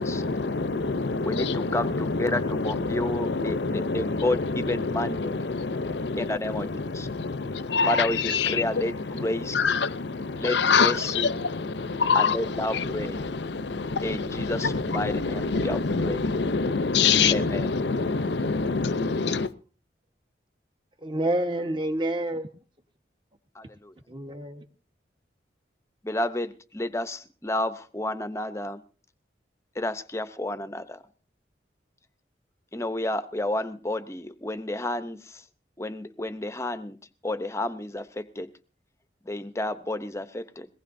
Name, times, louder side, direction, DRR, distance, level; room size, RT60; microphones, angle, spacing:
voice 1, 0.0-19.5, left 4 dB, 70° left, 0.7 m, -26 dB
voice 2, 1.3-5.4 6.2-7.1 7.9-9.6 10.4-11.3 12.1-13.3 14.0-16.3 17.3-17.7 23.6-23.9 26.0-28.8 29.8-31.0 32.7-35.4 35.8-37.0 37.2-38.5 39.3-40.7, left 1 dB, 15° left, 0.7 m, -31 dB
voice 3, 21.0-22.5 24.1-24.6, right 1 dB, 25° right, 1.2 m, -28 dB
22.0 x 19.0 x 2.7 m
head